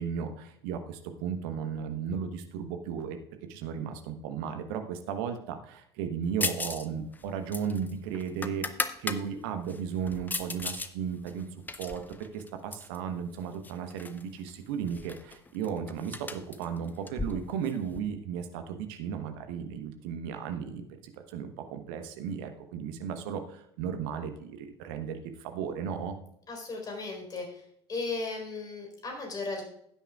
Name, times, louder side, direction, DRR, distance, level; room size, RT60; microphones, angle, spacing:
voice 1, 0.0-3.2 3.5-11.5 11.8-12.0 12.3-20.9 21.3-26.1, right 7 dB, 55° right, 7 dB, 1.1 m, -35 dB
sound 1, 6.4-6.9 7.1-9.2 9.7-10.9 11.3-13.0 13.6-14.2 14.5-14.6 14.9-18.0, left 3 dB, 15° left, 0.7 m, -36 dB
voice 2, 26.5-27.6 27.9-29.6, left 3 dB, 30° left, 1 dB, 4.1 m, -36 dB
15.5 x 9.0 x 2.4 m, 0.72 s
figure-of-eight pair, 65°, 14 cm